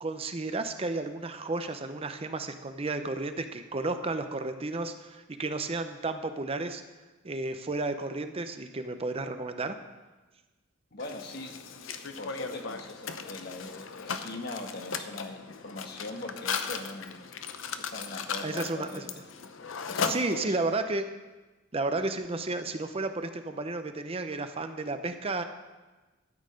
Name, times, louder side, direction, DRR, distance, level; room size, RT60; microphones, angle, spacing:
voice 1, 0.0-6.8 7.2-9.8 18.4-19.1 20.0-21.1 21.7-25.4, right 2 dB, 30° right, 8 dB, 0.6 m, -32 dB
voice 2, 10.9-11.6 12.2-17.2 17.7-19.1 19.9-20.6, left 2 dB, 55° left, 5 dB, 1.2 m, -41 dB
Mechanisms, 11.0-20.8, left 6 dB, 70° left, 0.7 m, -37 dB
13.0 x 8.9 x 5.2 m, 1.2 s
head